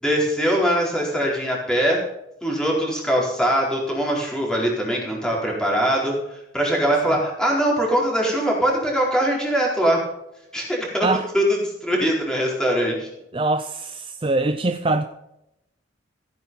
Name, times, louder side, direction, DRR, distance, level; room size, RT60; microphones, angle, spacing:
voice 1, 0.0-2.0 2.4-6.1 6.5-10.0 10.5-11.1 11.3-13.1, equal, 5° left, -3 dB, 4.4 m, -22 dB
voice 2, 13.3-15.0, right 2 dB, 25° right, 9 dB, 0.5 m, -23 dB
15.5 x 9.1 x 5.5 m, 0.85 s
head